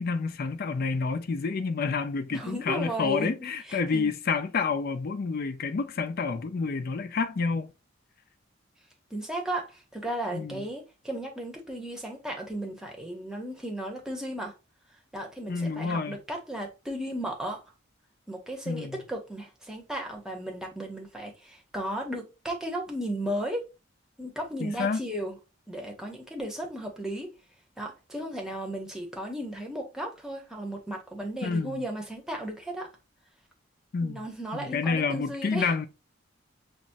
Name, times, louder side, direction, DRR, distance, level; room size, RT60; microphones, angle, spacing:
voice 1, 0.0-7.7 10.3-10.6 15.5-16.2 18.7-19.0 24.6-25.0 31.4-31.8 33.9-34.3 34.5-35.9, left 4 dB, 50° left, 0.4 m, -29 dB
voice 2, 2.3-4.1 9.1-14.5 15.1-17.6 18.3-23.7 24.2-25.4 25.7-27.3 27.8-32.9 34.0-35.7, right 1 dB, 5° right, 0.8 m, -35 dB
5.8 x 2.0 x 2.5 m
head